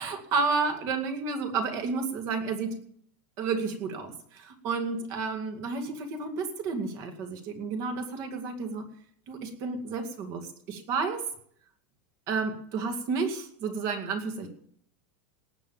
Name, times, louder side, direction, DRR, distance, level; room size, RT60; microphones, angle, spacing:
voice 1, 0.0-2.8 3.4-8.9 9.3-11.2 12.3-14.5, right 4 dB, 40° right, 6 dB, 2.2 m, -31 dB
18.5 x 7.3 x 7.4 m, 0.64 s
supercardioid pair, 165°, 7 cm